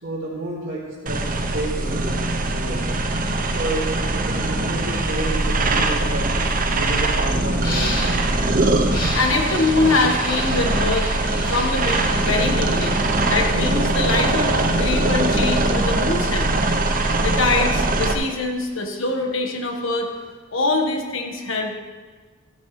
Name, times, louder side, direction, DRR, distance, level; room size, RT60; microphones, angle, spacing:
voice 1, 0.0-3.0 3.5-6.3 6.7-8.3, right 2 dB, 65° right, -9 dB, 3.0 m, -30 dB
sound 1, 1.1-18.1, right 2 dB, 40° right, 0.8 m, -21 dB
sound 2, 7.5-8.3 8.8-14.0 14.5-20.3, left 2 dB, 40° left, 2.4 m, -36 dB
voice 2, 9.1-11.1 11.5-16.5 17.2-20.1 20.5-21.7, left 3 dB, 60° left, 3 dB, 1.5 m, -23 dB
14.0 x 11.0 x 3.3 m, 1.4 s
head